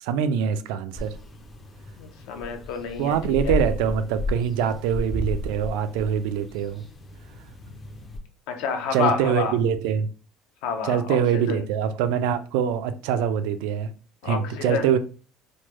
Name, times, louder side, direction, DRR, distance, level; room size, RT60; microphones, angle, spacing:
voice 1, 0.0-1.2 3.0-6.8 8.9-10.1 10.8-13.9 14.2-15.0, right 8 dB, 85° right, 0.3 m, -24 dB
sound 1, 1.0-8.2, left 1 dB, 20° left, 0.4 m, -33 dB
voice 2, 2.0-3.2 3.4-3.6 8.5-9.6 10.6-11.6 14.2-14.9, left 6 dB, 70° left, 0.6 m, -29 dB
3.1 x 2.1 x 3.0 m
cardioid pair, 175°, 0 cm